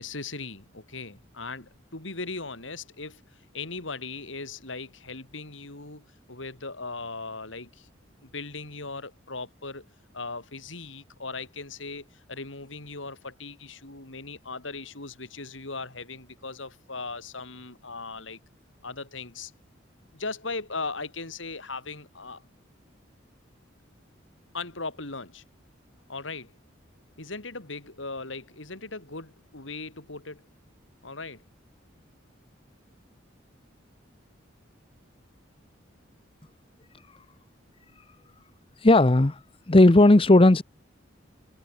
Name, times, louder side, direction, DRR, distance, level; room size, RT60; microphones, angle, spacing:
voice 1, 0.0-3.2 3.5-7.9 8.2-9.8 10.1-18.4 18.8-19.5 20.1-22.4 24.5-25.4 26.1-26.5 27.2-30.4 31.0-31.4, left 3 dB, 75° left, 4.5 m, -38 dB
voice 2, 38.8-39.4 39.7-40.6, left 2 dB, 30° left, 0.8 m, -16 dB
head